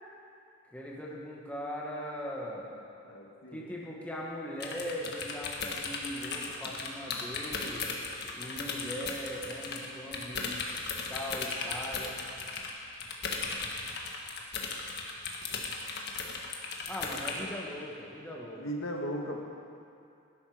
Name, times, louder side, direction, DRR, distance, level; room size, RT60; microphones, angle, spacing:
voice 1, 0.7-2.7 3.5-7.9 8.3-10.5 11.1-12.2 16.9-18.6, equal, 5° left, -4 dB, 1.9 m, -40 dB
voice 2, 3.0-3.7 17.4-17.5 18.6-19.4, equal, 75° left, 0 dB, 2.0 m, -37 dB
sound 1, 4.6-9.9 10.1-17.4, left 4 dB, 50° left, 1.7 m, -36 dB
19.5 x 11.0 x 5.2 m, 2.6 s
head